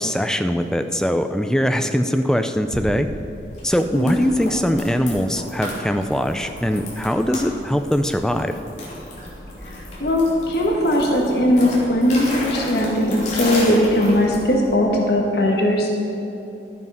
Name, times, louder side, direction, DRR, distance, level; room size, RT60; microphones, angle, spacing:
voice 1, 0.0-3.1 3.6-8.5, equal, 5° left, 8 dB, 0.4 m, -21 dB
sound 1, 2.7-14.7, left 1 dB, 40° left, 2.9 m, -33 dB
voice 2, 3.9-4.2 10.0-16.0, left 1 dB, 55° left, 0 dB, 1.5 m, -19 dB
12.5 x 9.3 x 5.6 m, 3.0 s
head